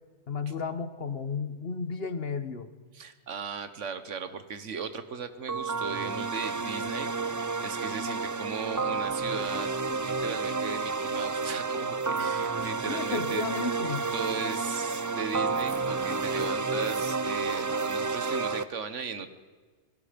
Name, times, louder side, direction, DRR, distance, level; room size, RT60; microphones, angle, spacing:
voice 1, 0.3-2.7 12.9-14.1, left 4 dB, 55° left, 11 dB, 1.4 m, -33 dB
voice 2, 2.9-7.3 7.6-9.7 10.0-13.4 14.1-19.3, right 6 dB, 85° right, 11 dB, 1.6 m, -37 dB
sound 1, 5.5-18.6, right 4 dB, 30° right, 0.3 m, -30 dB
sound 2, 11.3-11.6 12.0-18.3, right 2 dB, 60° right, 3.4 m, -52 dB
28.0 x 20.0 x 5.2 m, 1.5 s
omnidirectional pair, 1.2 m